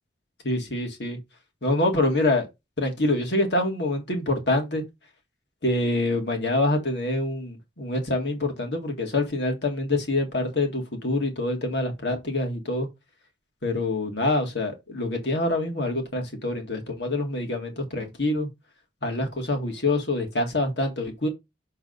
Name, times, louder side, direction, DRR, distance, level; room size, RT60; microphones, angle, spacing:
voice 1, 0.4-1.2 1.6-2.5 2.8-4.8 5.6-12.9 13.6-18.5 19.0-21.3, left 2 dB, 70° left, 2.1 m, -26 dB
6.4 x 3.9 x 4.0 m
head